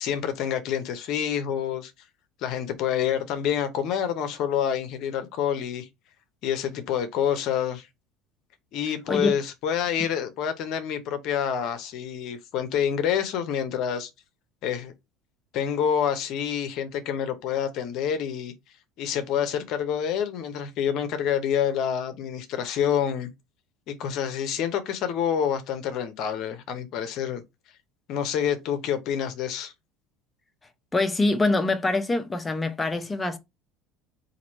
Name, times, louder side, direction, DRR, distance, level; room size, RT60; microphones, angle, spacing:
voice 1, 0.0-1.9 2.4-5.9 6.4-7.9 8.7-14.1 14.6-14.9 15.5-18.5 19.0-23.3 23.9-27.4 28.1-29.7, left 8 dB, 60° left, 0.7 m, -27 dB
voice 2, 30.9-33.4, left 2 dB, 20° left, 0.7 m, -24 dB
2.9 x 2.6 x 4.1 m
supercardioid pair, 90°, 0 cm